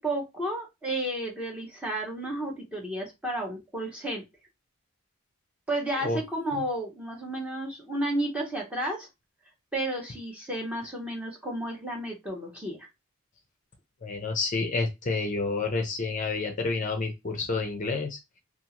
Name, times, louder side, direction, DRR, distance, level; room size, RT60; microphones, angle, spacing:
voice 1, 0.0-4.2 5.7-9.1 9.7-12.9, right 1 dB, 5° right, -1 dB, 0.7 m, -32 dB
voice 2, 14.0-18.2, left 3 dB, 35° left, 3 dB, 0.5 m, -29 dB
2.6 x 2.4 x 2.8 m, 0.22 s
head